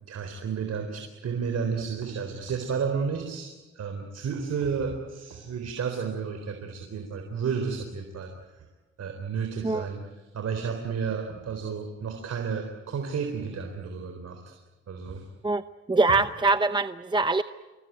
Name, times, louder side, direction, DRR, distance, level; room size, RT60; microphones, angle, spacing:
voice 1, 0.1-8.3 9.0-10.0 10.3-14.6 14.9-15.3, right 6 dB, 55° right, 4 dB, 4.0 m, -32 dB
voice 2, 15.9-17.4, right 3 dB, 15° right, 11 dB, 0.8 m, -23 dB
27.0 x 22.5 x 9.5 m, 1.2 s
cardioid pair, 90°, 30 cm